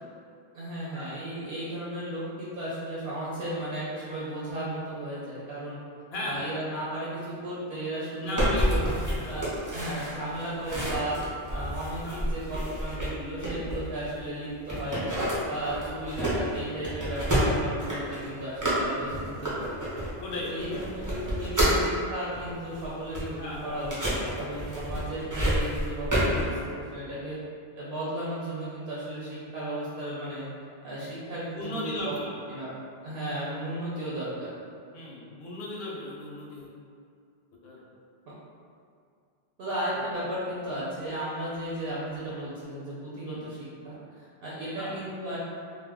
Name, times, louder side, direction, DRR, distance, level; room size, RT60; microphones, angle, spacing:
voice 1, 0.5-5.8 6.2-8.8 9.3-11.2 11.5-15.0 15.5-19.8 20.5-27.4 27.8-30.5 30.8-32.1 32.5-32.7 33.0-34.5 38.3-38.4 39.6-45.4, right 1 dB, 70° right, -8 dB, 0.8 m, -35 dB
voice 2, 6.1-6.5 8.2-9.4 12.0-12.3 13.4-13.7 14.9-15.2 17.4-17.6 20.2-20.8 23.4-24.1 26.3-26.5 31.5-32.3 34.9-36.7 37.6-37.8 43.3-43.4 44.8-44.9, left 1 dB, 80° left, -3 dB, 0.8 m, -36 dB
sound 1, 8.4-14.2 14.7-21.9 22.3-26.4, equal, 25° right, 0.5 m, -29 dB
2.2 x 2.1 x 3.4 m, 2.3 s
omnidirectional pair, 1.0 m